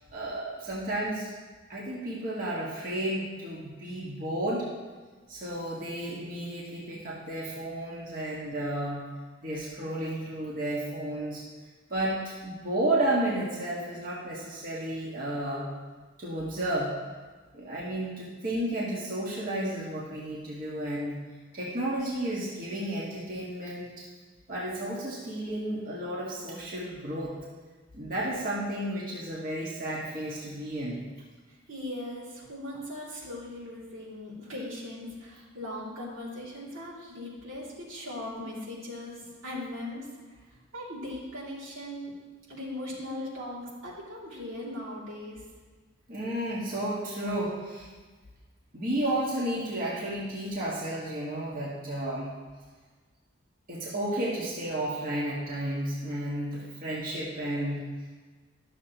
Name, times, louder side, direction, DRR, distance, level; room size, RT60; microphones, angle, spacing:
voice 1, 0.1-1.3 1.7-4.7 5.3-9.0 9.4-11.4 11.9-15.7 16.2-16.9 17.5-21.2 21.5-24.0 24.5-27.3 27.9-31.0 46.1-47.9 48.7-52.3 53.7-57.8, right 1 dB, 45° right, -6 dB, 1.5 m, -32 dB
voice 2, 31.5-40.1 40.7-42.1 42.5-45.4, left 1 dB, 85° right, -7 dB, 2.6 m, -39 dB
12.0 x 6.8 x 3.0 m, 1.4 s
head